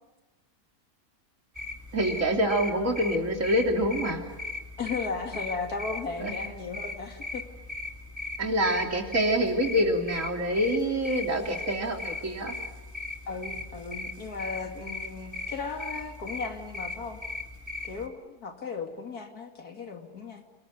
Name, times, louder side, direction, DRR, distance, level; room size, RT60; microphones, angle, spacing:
sound 1, 1.5-18.1, left 2 dB, 10° right, 2.4 m, -38 dB
voice 1, 1.9-4.2 6.2-6.3 8.4-12.5, equal, 55° right, 3 dB, 3.5 m, -26 dB
voice 2, 4.8-7.4 13.3-17.2 17.8-20.4, left 4 dB, 85° left, 5 dB, 3.0 m, -36 dB
28.5 x 21.5 x 9.3 m, 1.1 s
omnidirectional pair, 1.6 m